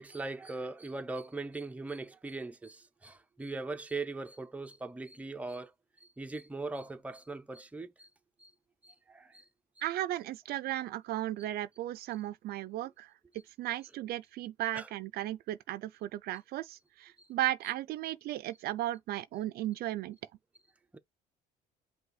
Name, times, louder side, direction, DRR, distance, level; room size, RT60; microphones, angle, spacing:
voice 1, 0.0-5.7 6.0-8.1 8.4-8.5 8.8-9.5 14.7-14.9 17.2-17.3 20.9-21.0, right 3 dB, 10° right, 0.5 m, -40 dB
voice 2, 9.8-13.1 13.6-20.2, right 14 dB, 70° right, 0.4 m, -35 dB
5.4 x 2.2 x 4.0 m
cardioid pair, 110°, 17 cm